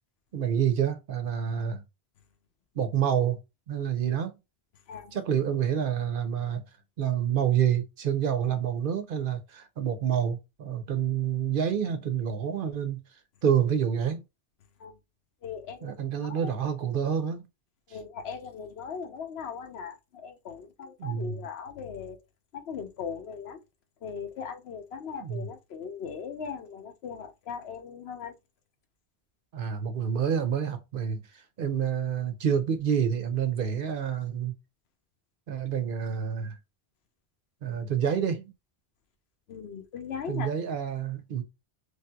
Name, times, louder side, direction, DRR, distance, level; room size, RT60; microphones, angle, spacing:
voice 1, 0.3-1.8 2.8-3.4 3.7-4.3 5.1-6.6 7.0-13.0 13.4-14.2 15.8-17.5 21.0-21.3 25.2-25.4 29.5-31.2 31.6-34.5 35.5-36.5 37.6-38.5 40.3-41.4, right 8 dB, 60° right, 0.8 m, -28 dB
voice 2, 15.4-16.5 17.9-22.2 22.5-23.6 24.0-28.3 39.5-40.5, left 6 dB, 80° left, 0.9 m, -39 dB
3.3 x 2.8 x 2.2 m
omnidirectional pair, 1.0 m